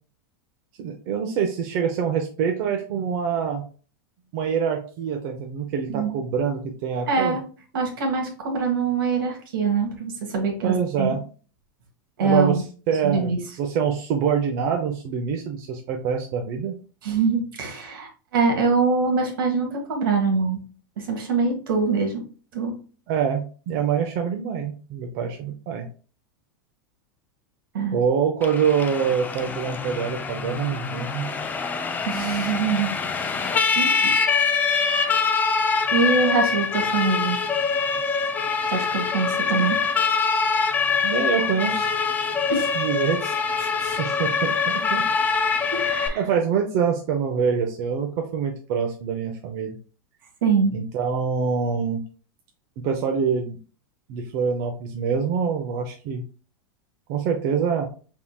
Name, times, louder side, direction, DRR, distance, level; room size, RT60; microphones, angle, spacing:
voice 1, 0.8-3.6 4.3-7.4 10.6-11.2 12.2-16.7 23.1-25.9 27.9-31.2 41.0-42.0 42.7-43.4 43.8-45.0 45.7-45.8 46.1-49.8 50.7-52.0 52.8-53.6 54.1-56.2 57.1-57.9, right 7 dB, 50° right, 2 dB, 0.7 m, -25 dB
voice 2, 7.1-7.4 7.7-11.2 12.2-12.6 13.0-13.4 17.0-20.6 21.0-22.2 22.5-22.7 27.7-28.0 32.1-32.9 33.7-34.1 35.3-35.4 35.9-37.4 38.7-39.8 42.5-42.7 43.6-43.7 45.7-46.2 50.4-50.7, right 4 dB, 80° right, 3 dB, 1.4 m, -24 dB
Siren, 28.4-46.1, left 5 dB, 15° left, 0.4 m, -24 dB
4.5 x 3.7 x 2.3 m, 0.38 s
supercardioid pair, 130°, 11 cm